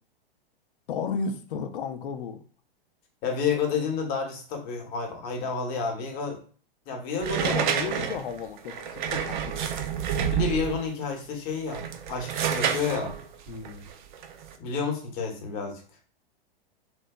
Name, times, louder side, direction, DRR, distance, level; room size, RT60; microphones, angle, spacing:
voice 1, 0.9-2.4 7.4-10.0 13.5-13.9, left 5 dB, 60° left, 8 dB, 0.5 m, -34 dB
voice 2, 3.2-6.4 6.9-7.6 7.9-8.0 10.3-13.1 14.6-15.8, left 5 dB, 40° left, 3 dB, 0.9 m, -30 dB
sound 1, 7.2-10.9 11.6-14.5, right 8 dB, 55° right, 0.4 m, -29 dB
2.7 x 2.2 x 2.2 m, 0.42 s
figure-of-eight pair, 105°, 30 cm